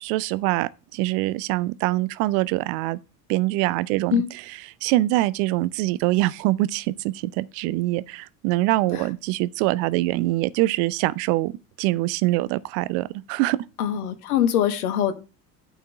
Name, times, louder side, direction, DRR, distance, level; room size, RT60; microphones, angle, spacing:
voice 1, 0.0-3.0 3.3-4.2 4.8-11.5 11.8-13.6, right 18 dB, 35° right, 0.4 m, -24 dB
voice 2, 13.8-15.1, left 10 dB, 60° left, 1.3 m, -23 dB
8.9 x 4.5 x 6.0 m
figure-of-eight pair, 70°, 49 cm